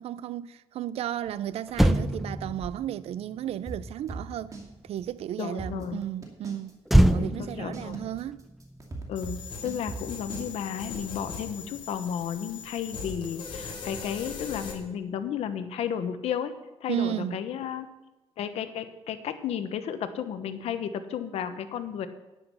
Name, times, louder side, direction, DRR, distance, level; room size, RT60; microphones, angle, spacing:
voice 1, 0.0-4.5 4.8-6.7 7.1-8.4 16.9-17.4, right 11 dB, 75° right, 0.5 m, -33 dB
Motor vehicle (road), 1.3-1.4 1.7-5.2 6.9-9.5 9.7-10.0, right 1 dB, ahead, 0.5 m, -26 dB
sound 1, 3.7-4.7 5.0-5.1 5.4-6.7 7.1-10.5, right 3 dB, 30° right, 2.5 m, -38 dB
voice 2, 5.4-6.0 7.0-8.0 9.1-16.5 16.8-17.9 18.4-22.1, left 8 dB, 80° left, 1.1 m, -33 dB
sound 2, 9.2-14.7, left 4 dB, 50° left, 3.6 m, -40 dB
11.0 x 10.0 x 5.6 m
cardioid pair, 115°, 10 cm